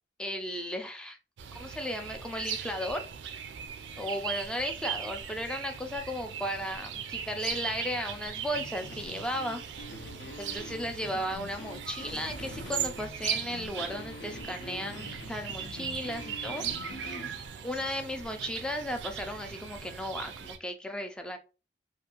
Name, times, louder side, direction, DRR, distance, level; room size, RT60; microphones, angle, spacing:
voice 1, 0.2-1.2 1.5-3.0 4.0-9.6 10.4-17.2 17.6-21.4, equal, 5° left, 4 dB, 0.3 m, -35 dB
sound 1, 1.4-20.6, right 8 dB, 70° right, 0.4 m, -39 dB
sound 2, 8.5-17.4, left 2 dB, 70° left, 0.5 m, -45 dB
2.6 x 2.5 x 2.8 m, 0.32 s
head